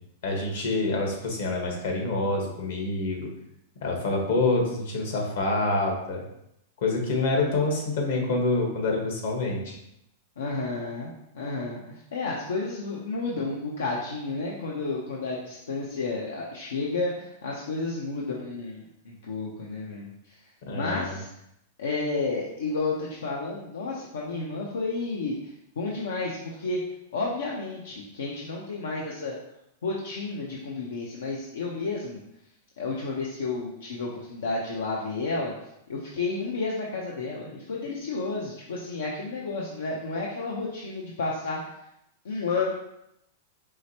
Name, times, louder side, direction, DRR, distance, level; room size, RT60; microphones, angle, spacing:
voice 1, 0.2-3.3 3.8-6.2 6.8-9.8 20.7-21.2, left 2 dB, 70° left, 1 dB, 1.3 m, -26 dB
voice 2, 10.4-20.4 20.7-21.3 21.8-26.8 27.1-29.4 29.8-32.2 32.8-35.5 35.9-41.7 42.2-42.7, left 3 dB, 90° left, -3 dB, 0.7 m, -31 dB
4.8 x 3.2 x 2.8 m, 0.80 s
hypercardioid pair, 130°, 0 cm